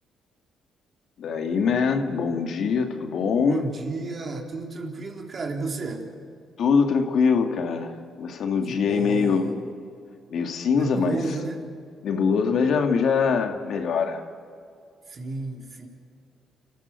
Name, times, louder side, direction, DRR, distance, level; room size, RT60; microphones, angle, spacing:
voice 1, 1.2-3.6 6.6-9.4 10.3-11.2 12.0-14.2, left 5 dB, 65° left, 5 dB, 2.2 m, -23 dB
voice 2, 3.5-6.1 8.7-9.6 10.7-11.6 15.1-15.9, right 3 dB, 40° right, 2 dB, 3.7 m, -32 dB
29.0 x 14.5 x 8.4 m, 2.4 s
cardioid pair, 90°, 0 cm